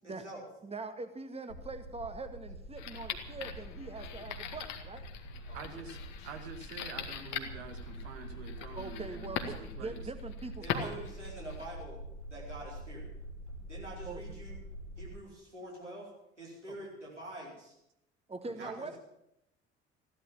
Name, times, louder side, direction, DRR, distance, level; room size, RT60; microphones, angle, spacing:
voice 1, 0.0-0.4 5.4-5.6 10.6-12.0 12.3-13.1 13.7-14.6 15.0-16.1 16.4-17.7 18.6-19.0, right 1 dB, 90° right, -4 dB, 4.4 m, -46 dB
voice 2, 0.6-5.0 8.8-11.1 14.1-14.2 16.7-16.8 18.3-19.0, right 3 dB, 15° right, 9 dB, 1.9 m, -42 dB
sound 1, 1.5-15.2, right 1 dB, 85° left, 3.5 m, -46 dB
sound 2, 2.8-11.8, left 8 dB, 50° left, 2.0 m, -42 dB
voice 3, 5.5-6.0 6.2-10.1 18.6-18.7, right 6 dB, 65° right, 6 dB, 2.2 m, -46 dB
15.5 x 12.0 x 7.3 m, 0.80 s
figure-of-eight pair, 60°, 35 cm